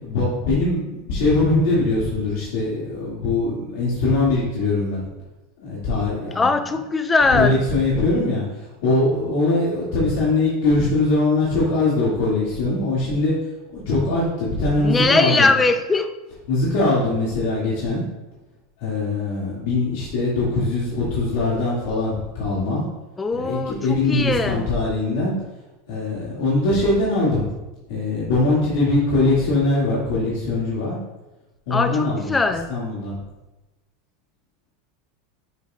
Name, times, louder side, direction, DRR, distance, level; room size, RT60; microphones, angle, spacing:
voice 1, 0.0-5.1 5.6-6.5 7.3-13.3 13.7-15.5 16.5-18.0 18.8-22.8 23.3-25.3 25.9-27.5 27.9-31.0 31.7-32.3 32.7-33.2, left 2 dB, 70° left, -7 dB, 2.2 m, -22 dB
voice 2, 6.4-7.6 14.8-16.1 23.2-24.7 31.7-32.7, left 3 dB, 15° left, 9 dB, 0.5 m, -20 dB
9.4 x 6.4 x 2.4 m, 1.0 s
supercardioid pair, 130°, 0 cm